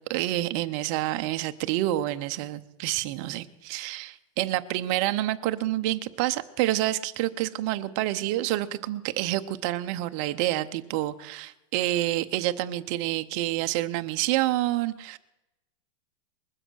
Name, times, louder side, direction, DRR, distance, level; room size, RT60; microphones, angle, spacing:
voice 1, 0.1-15.2, right 15 dB, 35° right, 10 dB, 0.7 m, -28 dB
21.0 x 7.8 x 6.3 m, 0.96 s
supercardioid pair, 170°, 16 cm